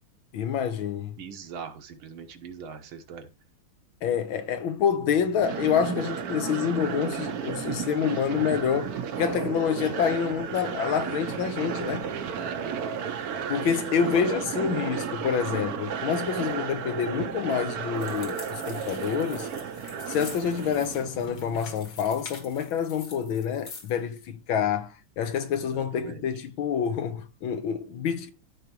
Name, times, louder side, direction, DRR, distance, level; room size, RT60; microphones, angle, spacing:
voice 1, 0.3-1.2 4.0-12.1 13.5-19.5 20.1-28.3, left 7 dB, 75° left, 1.7 m, -27 dB
voice 2, 1.2-3.3 12.3-12.8 25.5-26.3, right 6 dB, 80° right, 1.9 m, -42 dB
sound 1, 5.4-21.7, right 7 dB, 60° right, 1.0 m, -33 dB
sound 2, 17.9-24.0, left 4 dB, 50° left, 2.1 m, -46 dB
13.5 x 4.8 x 3.0 m
omnidirectional pair, 2.3 m